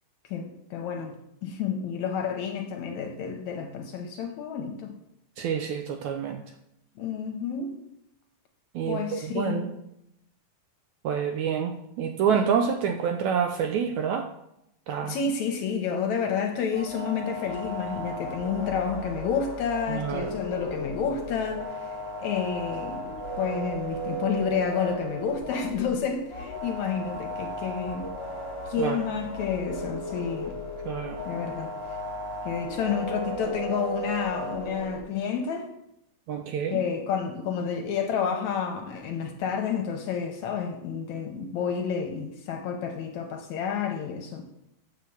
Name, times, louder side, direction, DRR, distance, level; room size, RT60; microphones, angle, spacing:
voice 1, 0.3-5.0 7.0-7.8 8.9-9.6 15.0-28.1 28.7-30.6 31.3-31.7 32.4-35.7 36.7-44.5, left 6 dB, 70° left, 4 dB, 1.9 m, -30 dB
voice 2, 5.4-6.4 8.8-9.7 11.0-14.3 14.9-15.2 19.9-20.4 28.8-29.0 30.9-31.2 36.3-36.8, right 7 dB, 80° right, 5 dB, 1.7 m, -27 dB
sound 1, 16.7-35.0, equal, 45° left, 0.3 m, -35 dB
8.1 x 5.8 x 7.2 m, 0.80 s
omnidirectional pair, 4.0 m